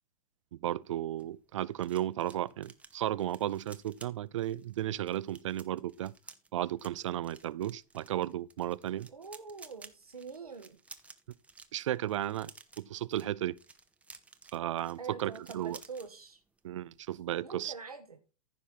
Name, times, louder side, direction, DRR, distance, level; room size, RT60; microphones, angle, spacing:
voice 1, 0.6-6.1 6.5-9.1 11.7-12.5 12.8-13.6 14.5-15.8 16.6-17.7, right 12 dB, 55° right, 0.5 m, -34 dB
sound 1, 0.9-16.1 16.4-16.7 16.9-17.2, right 3 dB, 5° right, 0.8 m, -55 dB
voice 2, 9.1-10.8 15.0-16.4 17.4-18.2, right 5 dB, 80° right, 1.3 m, -45 dB
14.5 x 5.6 x 4.4 m
figure-of-eight pair, 100°, 19 cm